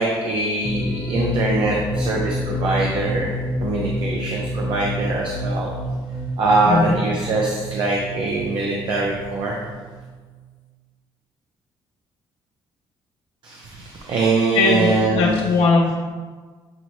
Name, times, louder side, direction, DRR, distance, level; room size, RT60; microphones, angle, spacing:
voice 1, 0.0-5.7 6.4-9.6 13.4-15.4, right 2 dB, 60° right, -2 dB, 0.8 m, -22 dB
Synthetic Bell, 0.6-10.3, left 1 dB, 15° left, 0.5 m, -28 dB
voice 2, 6.6-7.0 14.5-15.9, left 3 dB, 85° left, -3 dB, 0.8 m, -19 dB
7.5 x 4.1 x 3.1 m, 1.5 s
cardioid pair, 130°, 9 cm